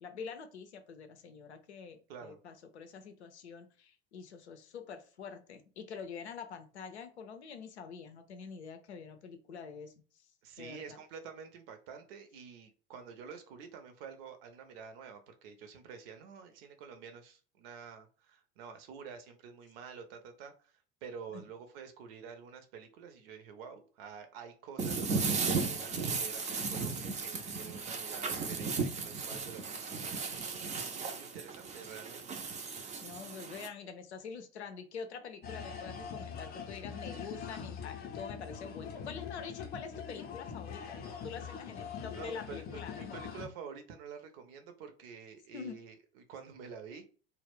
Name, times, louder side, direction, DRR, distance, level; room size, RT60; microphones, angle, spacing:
voice 1, 0.0-9.9 10.6-11.0 21.3-21.4 31.0-31.1 33.0-43.2 45.5-45.8, left 6 dB, 75° left, 7 dB, 0.5 m, -46 dB
voice 2, 10.4-20.7 21.0-30.5 30.8-32.4 36.2-36.3 42.1-47.0, right 6 dB, 55° right, 7 dB, 0.7 m, -49 dB
sound 1, 24.8-33.7, right 4 dB, 20° right, 0.4 m, -35 dB
sound 2, 35.4-43.5, left 6 dB, 30° left, 0.5 m, -43 dB
2.3 x 2.1 x 3.4 m, 0.39 s
figure-of-eight pair, 70°, 33 cm